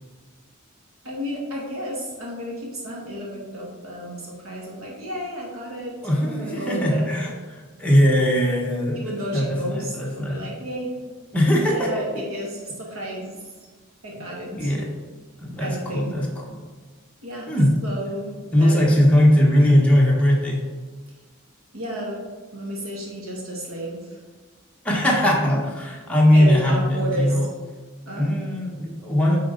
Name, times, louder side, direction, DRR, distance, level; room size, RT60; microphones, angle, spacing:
voice 1, 1.0-7.1 8.9-10.9 11.7-13.4 14.0-14.7 15.6-16.2 17.2-17.5 17.8-18.9 21.7-22.2 22.5-24.2 26.3-27.4 28.1-28.3, equal, 75° right, -3 dB, 1.8 m, -32 dB
voice 2, 6.0-10.4 11.3-12.1 14.6-14.9 15.4-16.6 17.5-17.7 18.5-20.6 24.8-27.5 28.1-29.4, equal, 5° left, -3 dB, 1.2 m, -20 dB
8.9 x 4.1 x 3.9 m, 1.4 s
head